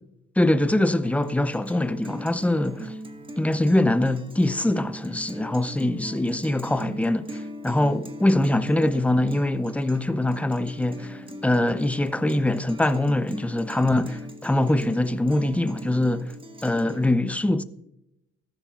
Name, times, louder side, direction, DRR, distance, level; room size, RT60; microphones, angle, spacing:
voice 1, 0.4-2.9 3.4-16.3 16.6-17.6, left 1 dB, 5° left, 0.6 m, -23 dB
Guitar, 1.0-17.1, right 1 dB, 15° right, 1.5 m, -40 dB
14.5 x 12.5 x 2.4 m
cardioid pair, 90°, 30 cm